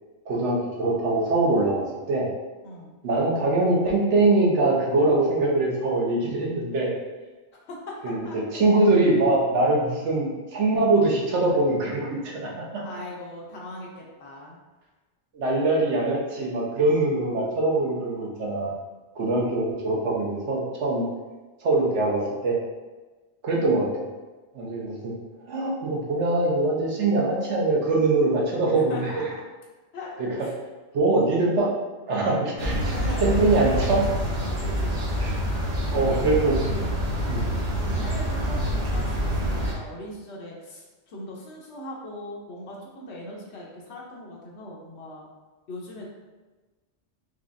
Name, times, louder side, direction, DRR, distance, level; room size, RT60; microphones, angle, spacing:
voice 1, 0.3-2.3 3.0-6.9 8.0-12.8 15.3-18.8 19.2-21.1 21.6-22.6 23.4-23.9 24.5-25.1 25.5-29.3 30.2-30.5 30.9-31.7 32.1-34.1 35.2-35.3 35.9-36.7 37.3-37.5, right 2 dB, 85° right, -3 dB, 1.1 m, -23 dB
voice 2, 7.7-8.4 12.8-14.6 28.7-29.4 29.9-30.5 32.7-33.4 34.6-35.4 35.9-36.2 36.6-37.1 37.8-45.3 45.7-46.1, left 1 dB, 75° left, -2 dB, 1.1 m, -39 dB
sound 1, 32.6-39.7, equal, 35° right, 0.9 m, -26 dB
4.8 x 2.3 x 2.5 m, 1.2 s
omnidirectional pair, 1.2 m